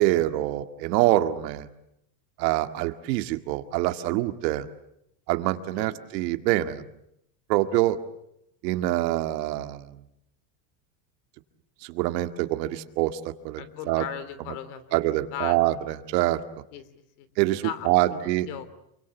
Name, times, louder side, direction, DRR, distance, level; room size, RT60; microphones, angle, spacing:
voice 1, 0.0-1.7 2.4-4.7 5.3-6.8 7.5-8.0 8.6-9.9 11.8-14.0 14.9-16.4 17.4-18.5, right 16 dB, 75° right, 8 dB, 2.1 m, -25 dB
voice 2, 13.6-15.6 16.7-17.3 17.6-18.7, left 10 dB, 65° left, 14 dB, 3.3 m, -38 dB
28.0 x 24.0 x 8.3 m, 0.78 s
cardioid pair, 155°, 49 cm